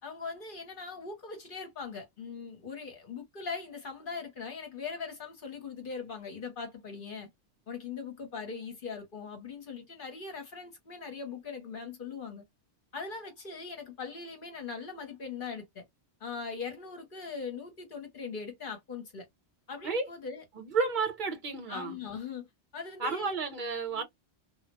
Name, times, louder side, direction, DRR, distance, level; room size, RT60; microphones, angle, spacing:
voice 1, 0.0-7.3 7.7-12.4 12.9-15.8 16.2-19.3 19.7-20.4 21.7-22.5 22.7-23.3 23.9-24.0, left 5 dB, 55° left, 0.9 m, -40 dB
voice 2, 20.5-22.0 23.0-24.0, right 4 dB, 50° right, 0.9 m, -31 dB
2.2 x 2.1 x 2.8 m
omnidirectional pair, 1.1 m